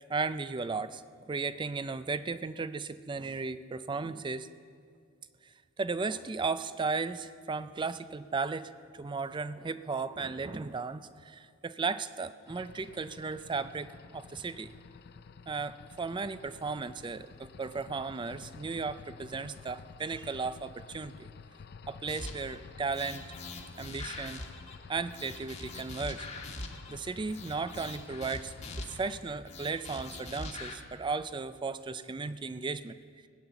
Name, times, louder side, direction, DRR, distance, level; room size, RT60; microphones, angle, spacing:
voice 1, 0.1-1.0 1.3-4.5 5.8-14.7 15.5-21.3 21.9-23.3 23.8-24.4 24.9-26.3 26.9-33.0, right 4 dB, 25° right, 14 dB, 0.4 m, -35 dB
sound 1, 12.5-29.2, left 5 dB, 55° left, 0.4 m, -51 dB
sound 2, 22.1-22.6 22.9-24.8 25.1-26.9 27.3-29.1 29.5-30.8, left 2 dB, 35° left, 1.4 m, -42 dB
19.0 x 8.9 x 7.0 m, 2.2 s
head